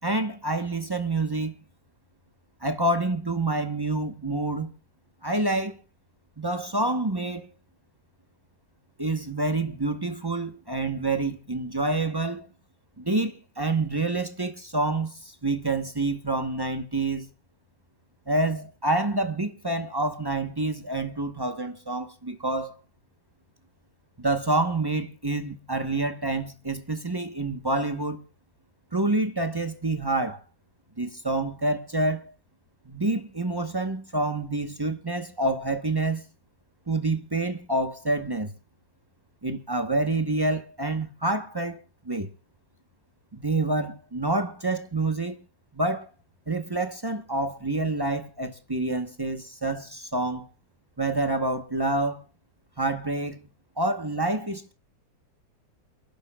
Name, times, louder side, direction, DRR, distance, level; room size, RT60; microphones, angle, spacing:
voice 1, 0.0-1.6 2.6-4.7 5.2-5.8 6.4-7.5 9.0-12.5 13.0-17.3 18.3-22.8 24.2-28.2 28.9-30.4 31.0-32.3 32.8-36.2 36.9-38.5 39.4-41.8 42.0-42.3 43.3-45.4 45.7-46.1 46.5-50.5 51.0-52.2 52.8-53.4 53.8-54.7, right 2 dB, 30° right, 0.4 m, -27 dB
29.0 x 11.5 x 2.3 m
omnidirectional pair, 2.2 m